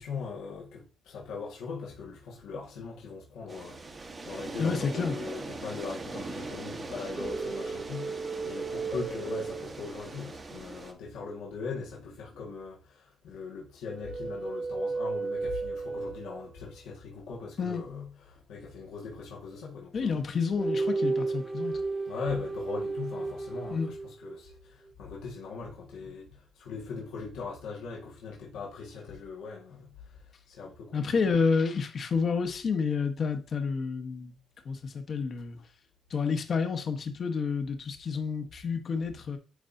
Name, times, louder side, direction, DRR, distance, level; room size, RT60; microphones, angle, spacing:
voice 1, 0.0-20.1 22.1-31.2, left 5 dB, 85° left, 1.7 m, -40 dB
sound 1, 3.5-10.9, right 3 dB, 35° right, 1.1 m, -41 dB
voice 2, 4.6-5.1 17.6-17.8 19.9-21.8 23.7-23.9 30.9-34.4 34.6-35.6 36.1-39.4, left 5 dB, 50° left, 1.2 m, -29 dB
sound 2, 7.2-10.4 13.9-16.5 20.6-24.4, right 3 dB, 20° right, 0.5 m, -34 dB
9.4 x 4.2 x 2.7 m
cardioid pair, 90°, 0 cm